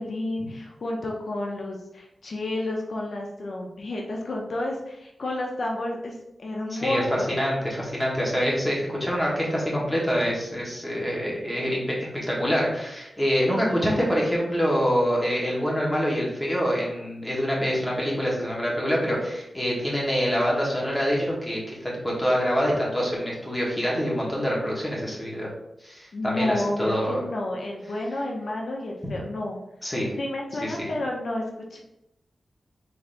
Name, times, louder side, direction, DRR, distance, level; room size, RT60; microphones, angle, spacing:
voice 1, 0.0-7.3 13.6-14.0 26.1-29.6 30.2-31.4 31.7-31.8, left 1 dB, 60° left, -1 dB, 0.5 m, -31 dB
voice 2, 6.7-7.0 7.3-25.5 25.8-27.2 29.8-30.1 30.6-30.9, equal, 10° left, -4 dB, 1.0 m, -26 dB
3.7 x 3.3 x 2.5 m, 0.85 s
wide cardioid pair, 125°, 0 cm